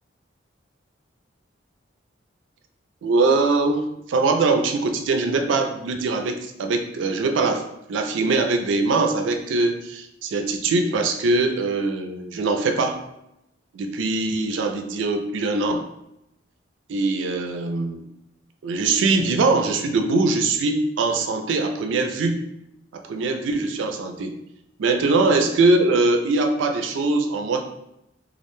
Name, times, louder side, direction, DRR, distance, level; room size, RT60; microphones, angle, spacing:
voice 1, 3.0-7.6 7.9-13.0 13.7-15.8 16.9-18.0 18.6-22.4 22.9-24.3 24.8-27.6, right 3 dB, 75° right, 6 dB, 0.3 m, -22 dB
2.4 x 2.1 x 3.0 m, 0.84 s
head